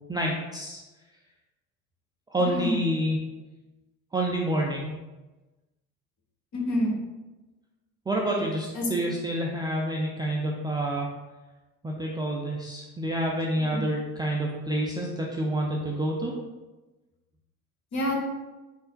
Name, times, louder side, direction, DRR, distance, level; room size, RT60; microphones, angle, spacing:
voice 1, 0.1-0.8 2.3-3.2 4.1-4.9 8.1-11.1 11.8-16.3, right 1 dB, 10° right, -2 dB, 0.4 m, -28 dB
voice 2, 2.4-2.8 6.5-7.0 8.7-8.9 13.7-13.8 17.9-18.1, left 1 dB, 40° left, 1 dB, 1.1 m, -27 dB
5.4 x 3.9 x 2.2 m, 1.1 s
figure-of-eight pair, 55°, 44 cm